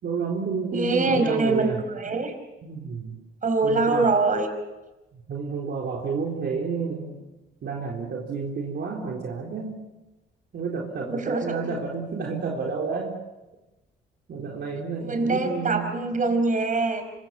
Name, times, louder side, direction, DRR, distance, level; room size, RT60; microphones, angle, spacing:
voice 1, 0.0-1.8 2.6-3.2 3.6-4.1 5.1-7.2 7.6-9.9 10.5-13.2 14.3-15.9, right 5 dB, 60° right, -1 dB, 4.0 m, -30 dB
voice 2, 0.7-2.3 3.4-4.5 11.1-11.6 15.0-17.0, right 3 dB, 40° right, 7 dB, 4.8 m, -24 dB
26.5 x 24.5 x 5.9 m, 1.0 s
cardioid pair, 90°, 20 cm